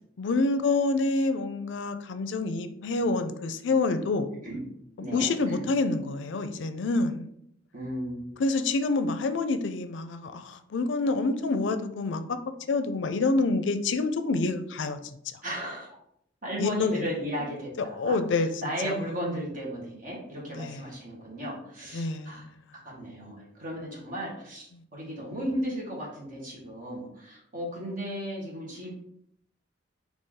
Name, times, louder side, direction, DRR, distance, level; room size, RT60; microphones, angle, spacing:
voice 1, 0.2-4.3 5.1-7.3 8.4-12.4 12.7-15.0 16.6-17.1 18.0-18.5 18.8-19.0 20.5-20.8 21.9-22.5, left 3 dB, 70° left, 9 dB, 0.4 m, -27 dB
voice 2, 5.0-5.6 7.7-8.4 15.4-15.9 16.4-22.4 22.8-28.9, equal, 45° right, -4 dB, 1.7 m, -35 dB
4.2 x 3.0 x 3.7 m, 0.73 s
head